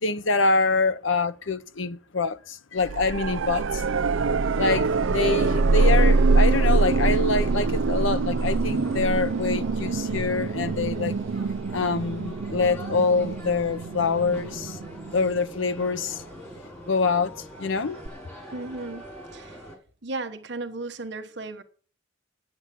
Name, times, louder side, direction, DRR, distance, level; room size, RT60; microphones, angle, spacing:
voice 1, 0.0-3.8 4.6-11.2 11.7-14.8 15.1-16.2 16.9-17.3 17.6-18.0, left 4 dB, 80° left, 0.8 m, -25 dB
sound 1, 2.8-15.7 18.1-18.2, right 3 dB, 85° right, 0.5 m, -24 dB
sound 2, 4.6-19.8, equal, 10° left, 5.6 m, -43 dB
voice 2, 18.5-19.0 19.3-19.6 20.0-21.6, right 2 dB, 60° right, 1.2 m, -35 dB
9.6 x 8.0 x 8.5 m
head